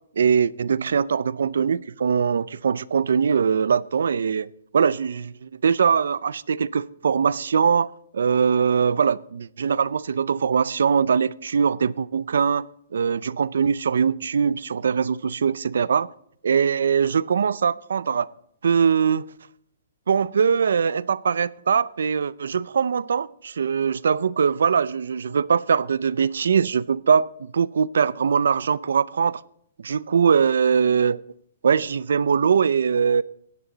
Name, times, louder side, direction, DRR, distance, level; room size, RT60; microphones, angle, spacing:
voice 1, 0.2-4.5 4.7-7.9 8.1-12.7 12.9-16.1 16.4-18.3 18.6-19.2 20.1-29.4 29.8-31.2 31.6-33.2, right 6 dB, 85° right, 0.5 m, -21 dB
16.5 x 11.0 x 3.9 m
hypercardioid pair, 175°, 0 cm